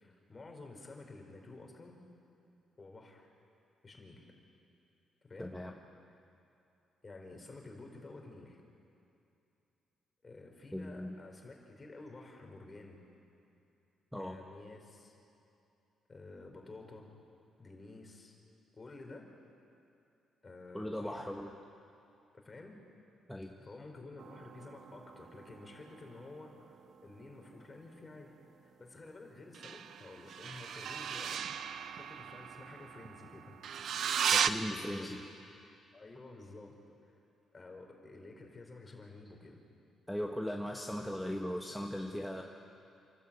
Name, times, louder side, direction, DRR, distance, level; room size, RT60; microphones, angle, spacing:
voice 1, 0.0-2.0 2.8-3.3 3.8-4.3 5.2-5.6 7.0-8.6 10.2-13.0 14.1-15.2 16.1-17.1 17.6-18.4 18.7-19.3 20.4-21.3 22.3-22.7 23.6-26.7 27.0-28.3 28.6-31.4 32.0-33.6 34.7-35.2 35.9-36.8 37.0-37.1 37.5-39.6, left 2 dB, 30° left, 2 dB, 4.3 m, -51 dB
voice 2, 5.4-5.7 10.7-11.1 14.1-14.4 20.7-21.6 23.3-23.5 34.3-35.2 40.1-42.4, equal, ahead, 1 dB, 1.3 m, -38 dB
sound 1, 24.2-27.2 29.5-34.5, right 8 dB, 65° right, 0.8 m, -37 dB
28.0 x 12.5 x 8.6 m, 2.7 s
cardioid pair, 90°, 0 cm